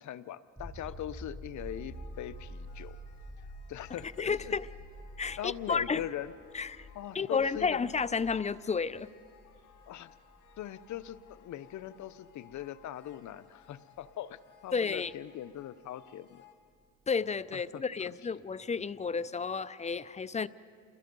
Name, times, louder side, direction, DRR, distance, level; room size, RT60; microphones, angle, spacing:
voice 1, 0.0-3.0 3.7-4.6 5.4-6.3 6.9-7.8 9.9-10.1 10.6-16.4 17.5-18.2, left 11 dB, 70° left, 14 dB, 0.8 m, -41 dB
sound 1, 0.6-14.1 16.8-16.9, equal, 5° right, 2.8 m, -49 dB
sound 2, 1.6-16.5, left 10 dB, 90° left, 2.6 m, -61 dB
voice 2, 4.2-4.7 5.2-6.0 6.5-6.9 7.1-9.1 14.7-15.1 17.1-20.5, left 5 dB, 25° left, 17 dB, 0.5 m, -31 dB
29.0 x 22.0 x 5.4 m, 2.2 s
cardioid pair, 90°, 30 cm